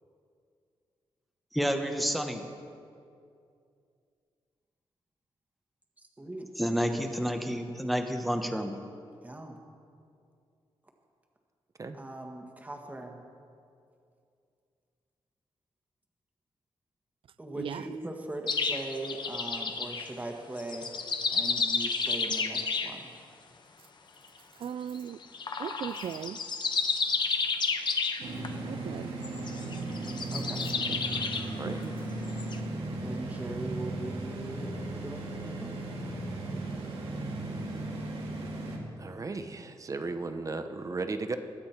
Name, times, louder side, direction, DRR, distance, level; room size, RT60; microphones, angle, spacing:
voice 1, 1.5-2.4 6.6-8.8, equal, ahead, 5 dB, 1.0 m, -29 dB
voice 2, 9.2-9.6 11.9-13.2 17.4-20.9 21.3-23.2 30.3-30.6 33.0-35.8, right 1 dB, 15° right, 2 dB, 1.4 m, -40 dB
sound 1, 18.5-20.1 20.6-22.9 25.2-28.5 29.2-31.5 32.3-32.6, left 4 dB, 50° left, 1.0 m, -31 dB
voice 3, 24.6-25.2 25.6-26.4 28.6-29.1 30.9-31.0 31.6-32.0, right 9 dB, 70° right, 17 dB, 0.4 m, -37 dB
sound 2, 28.2-38.8, right 2 dB, 85° right, 2.1 m, -36 dB
voice 4, 39.0-41.4, right 3 dB, 35° right, 8 dB, 0.8 m, -35 dB
21.5 x 8.7 x 4.4 m, 2.4 s
wide cardioid pair, 105°, 10 cm